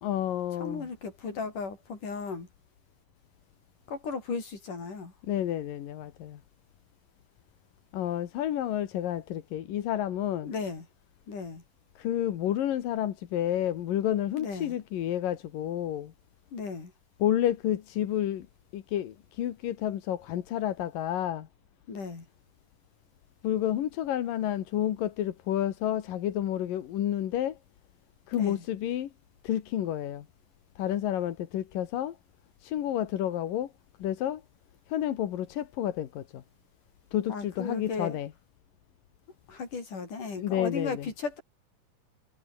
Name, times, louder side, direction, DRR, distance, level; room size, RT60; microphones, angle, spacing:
voice 1, 0.0-0.9 5.2-6.4 7.9-10.5 12.0-16.1 17.2-18.5 18.7-21.5 23.4-27.6 28.3-29.1 29.4-30.3 30.8-32.2 32.6-33.7 34.0-34.4 34.9-36.4 37.1-38.3 40.4-41.1, left 11 dB, 90° left, 3.3 m, -30 dB
voice 2, 0.6-2.5 3.9-5.1 10.4-10.9 11.3-11.6 14.4-14.8 16.5-16.9 21.9-22.3 28.3-28.7 37.3-38.2 39.5-41.4, left 4 dB, 70° left, 7.3 m, -36 dB
omnidirectional pair, 3.8 m